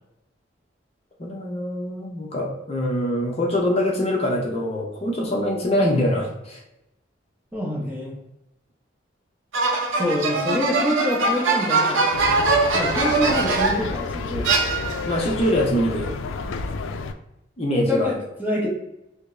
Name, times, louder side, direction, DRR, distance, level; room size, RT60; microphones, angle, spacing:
voice 1, 1.2-6.6 13.2-13.4 15.0-16.1 17.6-18.1, left 1 dB, 30° left, -1 dB, 0.6 m, -24 dB
voice 2, 7.5-8.1 10.0-12.1 12.7-14.5 16.4-16.6 17.7-18.7, left 1 dB, 10° right, -3 dB, 0.7 m, -26 dB
sound 1, 9.5-13.9 14.4-15.2, right 3 dB, 80° right, 0.6 m, -22 dB
sound 2, 12.1-17.1, left 4 dB, 90° left, 0.3 m, -30 dB
5.0 x 2.0 x 2.5 m, 0.91 s
head